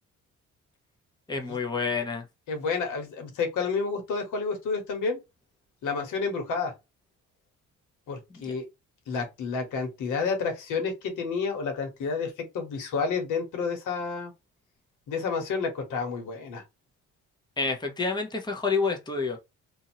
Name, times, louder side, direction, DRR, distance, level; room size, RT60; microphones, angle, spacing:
voice 1, 1.3-2.2 8.4-8.5 17.6-19.4, left 4 dB, 15° left, 0.9 m, -28 dB
voice 2, 2.5-5.2 5.8-6.7 8.1-8.6 9.1-14.3 15.1-16.6, left 5 dB, 85° left, 1.3 m, -30 dB
2.7 x 2.6 x 2.8 m
cardioid pair, 90°, 30 cm